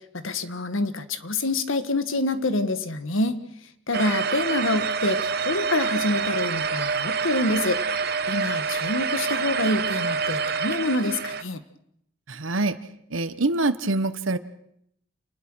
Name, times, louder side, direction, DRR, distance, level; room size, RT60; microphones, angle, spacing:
voice 1, 0.1-3.4 3.9-7.8 8.3-11.6, left 2 dB, 85° left, 11 dB, 1.6 m, -26 dB
sound 1, 3.9-11.4, right 5 dB, 50° right, 1.0 m, -27 dB
voice 2, 12.3-12.8 13.1-14.4, right 2 dB, 85° right, 11 dB, 1.2 m, -25 dB
28.0 x 20.0 x 6.3 m, 0.73 s
head